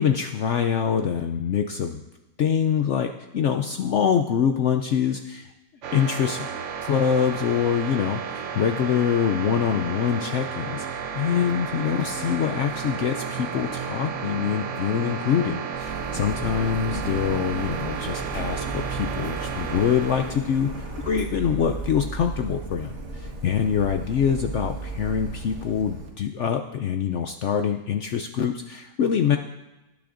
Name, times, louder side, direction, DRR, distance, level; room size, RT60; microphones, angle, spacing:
voice 1, 0.0-2.0 2.4-5.5 5.9-6.5 6.8-20.7 21.0-29.4, left 8 dB, 85° left, 6 dB, 0.6 m, -25 dB
sound 1, 5.8-20.3, right 7 dB, 60° right, 0.8 m, -32 dB
Printer, 15.7-26.1, right 3 dB, 45° right, 1.7 m, -35 dB
18.5 x 10.5 x 2.5 m, 1.0 s
omnidirectional pair, 1.8 m